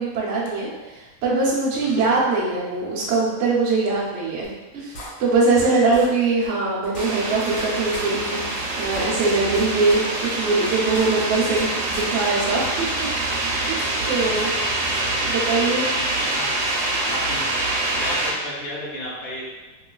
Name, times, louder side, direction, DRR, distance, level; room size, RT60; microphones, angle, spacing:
voice 1, 0.0-8.4 8.8-13.7 14.1-14.5 15.2-15.9, right 3 dB, 90° right, -5 dB, 0.6 m, -22 dB
voice 2, 1.8-2.2 5.8-5.9 13.7-14.1 15.9-16.5 17.1-17.5 17.9-19.4, left 1 dB, 45° left, -7 dB, 0.9 m, -34 dB
sound 1, 4.4-4.5 4.9-5.6 5.9-6.1 6.4-6.5 6.8-7.6 7.9-8.0 8.4-8.5 8.8-9.6 9.9-10.0 10.4-10.5 10.8-11.6 11.9-12.0, equal, 75° left, 1.5 m, -37 dB
sound 2, 6.9-18.3, right 2 dB, 70° right, 1.1 m, -25 dB
3.1 x 3.1 x 2.3 m, 1.2 s
omnidirectional pair, 2.3 m